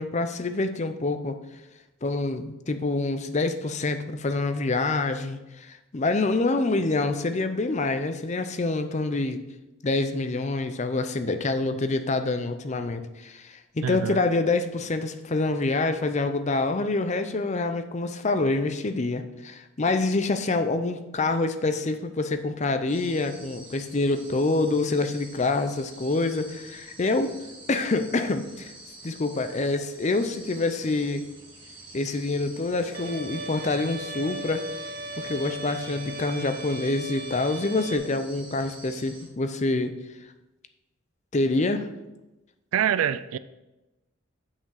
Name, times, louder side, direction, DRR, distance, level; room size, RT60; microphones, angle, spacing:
voice 1, 0.0-1.4 2.0-9.4 9.8-27.3 27.7-28.7 29.0-31.2 31.9-34.6 35.2-40.0 41.3-41.9, left 3 dB, 35° left, 9 dB, 0.5 m, -26 dB
voice 2, 13.8-14.2 42.7-43.4, right 9 dB, 90° right, 15 dB, 0.3 m, -25 dB
sound 1, 22.9-39.3, right 1 dB, 25° right, 2.2 m, -47 dB
Bowed string instrument, 32.9-38.0, right 2 dB, 45° right, 1.0 m, -37 dB
7.2 x 5.8 x 4.8 m, 1.0 s
head